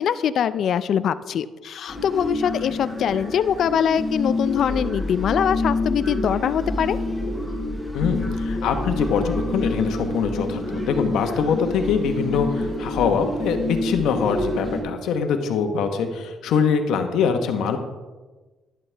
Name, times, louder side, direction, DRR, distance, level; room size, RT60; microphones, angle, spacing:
voice 1, 0.0-7.0, left 8 dB, 65° left, 14 dB, 0.4 m, -23 dB
sound 1, 1.9-14.8, left 2 dB, 5° right, 4.1 m, -27 dB
voice 2, 7.9-17.8, left 6 dB, 85° left, 6 dB, 1.1 m, -23 dB
11.0 x 11.0 x 3.4 m, 1.3 s
cardioid pair, 90°, 0 cm